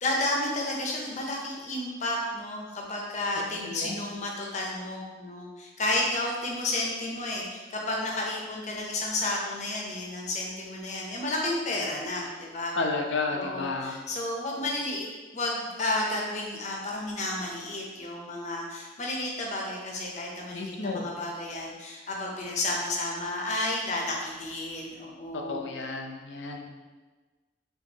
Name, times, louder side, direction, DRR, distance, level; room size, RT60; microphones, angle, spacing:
voice 1, 0.0-12.7 13.3-15.0 15.3-25.6, left 2 dB, 40° left, -1 dB, 0.7 m, -32 dB
voice 2, 3.6-4.1 12.8-13.9 20.5-21.1 25.5-26.7, left 3 dB, 75° left, 2 dB, 0.6 m, -32 dB
4.4 x 3.5 x 2.9 m, 1.3 s
head